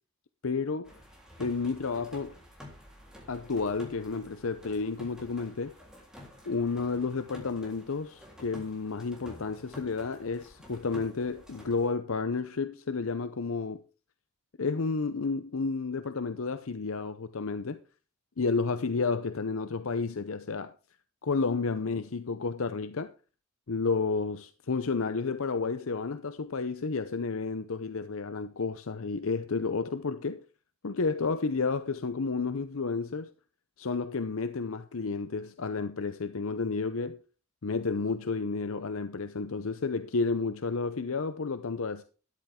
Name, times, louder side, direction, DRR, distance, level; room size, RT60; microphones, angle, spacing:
voice 1, 0.4-0.9 1.4-2.3 3.3-5.7 6.4-13.8 14.6-17.8 18.4-20.7 21.2-23.1 23.7-30.4 30.8-33.3 33.8-37.2 37.6-42.0, left 4 dB, 65° left, 0.7 m, -31 dB
sound 1, 0.8-11.9, left 1 dB, 5° right, 3.5 m, -50 dB
13.0 x 10.5 x 3.6 m
head